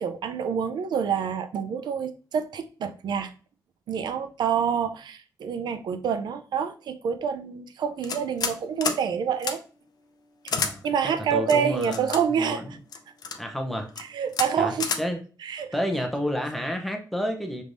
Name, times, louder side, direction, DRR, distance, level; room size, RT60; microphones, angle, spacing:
voice 1, 0.0-3.3 3.9-9.6 10.8-12.8 14.0-14.9 15.4-15.7, right 7 dB, 75° right, 0.5 m, -27 dB
sound 1, 8.0-8.6 8.8-9.0 9.4-9.5 10.5-10.7 11.5-12.2 12.9-13.4 13.9-14.0 14.3-14.5 14.8-15.0, left 6 dB, 60° left, 0.5 m, -28 dB
voice 2, 11.3-12.8 13.4-13.9 14.6-15.2 15.7-17.6, equal, ahead, 0.7 m, -30 dB
5.2 x 3.1 x 2.6 m
cardioid pair, 115°, 7 cm